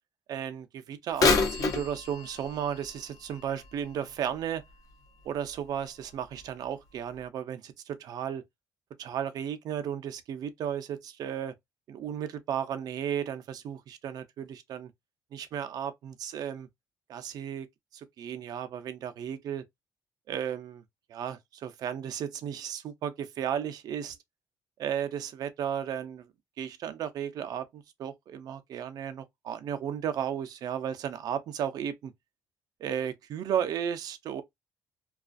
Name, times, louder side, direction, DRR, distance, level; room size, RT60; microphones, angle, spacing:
voice 1, 0.3-4.6 5.3-8.4 9.0-11.5 11.9-14.9 15.3-16.7 17.1-17.7 17.9-19.6 20.3-20.8 21.1-24.2 24.8-26.2 26.6-32.1 32.8-34.4, right 9 dB, 70° right, 0.5 m, -34 dB
Bird vocalization bird call bird song / Telephone, 1.1-4.9 5.5-5.6 6.4-6.5 7.2-7.3, left 4 dB, 55° left, 0.6 m, -30 dB
2.4 x 2.3 x 2.4 m
cardioid pair, 95°, 7 cm